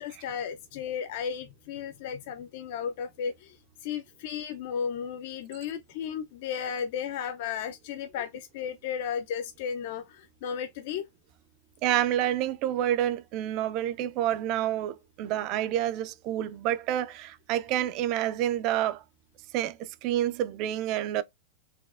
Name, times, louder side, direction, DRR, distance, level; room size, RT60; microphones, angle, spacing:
voice 1, 0.0-11.1, left 7 dB, 60° left, 0.3 m, -34 dB
voice 2, 11.8-19.0 19.5-21.2, right 12 dB, 45° right, 0.3 m, -28 dB
4.1 x 2.0 x 2.3 m
hypercardioid pair, 105°, 0 cm